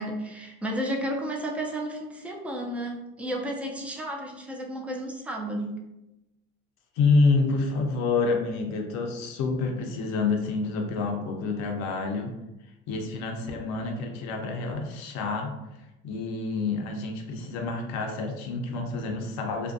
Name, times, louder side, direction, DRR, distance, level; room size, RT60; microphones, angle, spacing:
voice 1, 0.0-5.7, right 1 dB, 5° right, 0 dB, 0.4 m, -32 dB
voice 2, 7.0-12.3 12.9-15.6 16.0-19.7, left 3 dB, 60° left, 3 dB, 0.6 m, -27 dB
2.5 x 2.2 x 2.4 m, 0.94 s
supercardioid pair, 90°, 31 cm